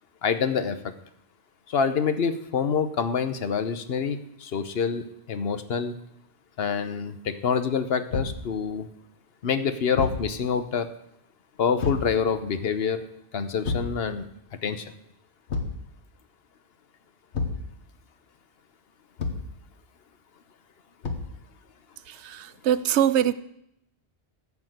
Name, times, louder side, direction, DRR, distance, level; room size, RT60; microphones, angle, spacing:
voice 1, 0.2-0.9 1.7-6.0 6.6-8.9 9.4-10.9 11.6-13.0 13.3-14.3 14.6-14.9, left 6 dB, 65° left, 10 dB, 1.0 m, -26 dB
Thump thud, 8.1-8.5 9.9-10.3 11.8-12.1 13.6-14.0 15.5-15.8 17.3-17.7 19.2-19.5 21.0-21.4, left 4 dB, 85° left, 1.5 m, -29 dB
voice 2, 22.1-23.3, right 10 dB, 80° right, 15 dB, 0.9 m, -23 dB
13.5 x 5.9 x 7.8 m, 0.77 s
omnidirectional pair, 1.1 m